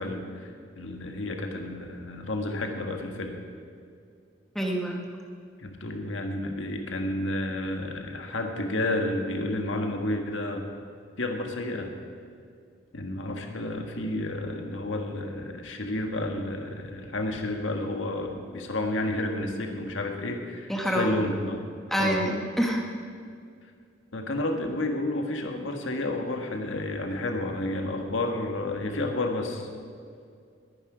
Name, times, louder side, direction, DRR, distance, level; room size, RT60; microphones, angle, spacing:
voice 1, 0.0-3.3 5.6-10.6 11.2-11.9 12.9-21.6 22.0-22.2 24.1-29.7, left 1 dB, 85° left, 3 dB, 1.6 m, -31 dB
voice 2, 4.5-5.0 20.7-21.2 21.9-22.9, equal, ahead, -1 dB, 1.5 m, -26 dB
20.5 x 10.0 x 5.0 m, 2.3 s
head